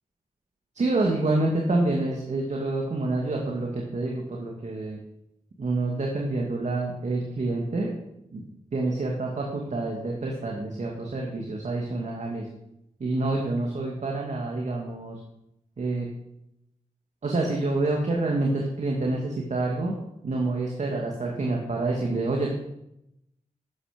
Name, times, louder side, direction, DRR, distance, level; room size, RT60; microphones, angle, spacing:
voice 1, 0.8-5.0 5.6-7.9 8.3-8.4 8.7-12.5 13.0-15.2 15.8-16.1 17.2-19.9 20.2-22.5, right 2 dB, 60° right, -1 dB, 2.3 m, -27 dB
12.0 x 9.7 x 5.3 m, 0.84 s
cardioid pair, 60°, 14 cm